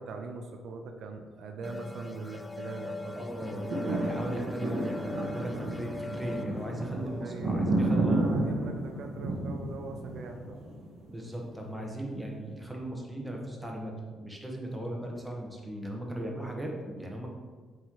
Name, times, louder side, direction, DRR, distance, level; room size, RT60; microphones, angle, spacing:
voice 1, 0.0-3.3 6.7-10.6 14.5-14.6, right 3 dB, 70° right, 4 dB, 0.6 m, -42 dB
sound 1, 1.6-8.9, left 2 dB, 15° left, 0.4 m, -42 dB
voice 2, 3.1-8.3 11.1-17.3, right 1 dB, 10° right, 0 dB, 1.3 m, -37 dB
sound 2, 3.3-11.5 12.1-12.2, right 2 dB, 85° right, 1.5 m, -32 dB
7.6 x 3.2 x 4.7 m, 1.4 s
cardioid pair, 90°, 0 cm